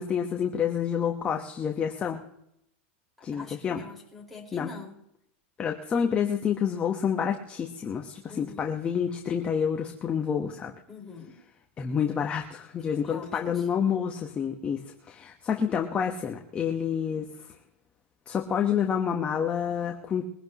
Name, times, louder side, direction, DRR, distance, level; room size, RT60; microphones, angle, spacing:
voice 1, 0.0-2.2 3.2-3.8 4.5-4.7 5.6-10.7 11.8-17.2 18.3-20.2, left 7 dB, 20° left, 2 dB, 1.2 m, -28 dB
voice 2, 3.3-4.9 8.3-8.7 10.9-11.3 13.1-13.7, left 3 dB, ahead, -6 dB, 5.0 m, -44 dB
22.5 x 11.5 x 3.1 m, 0.75 s
supercardioid pair, 150°, 7 cm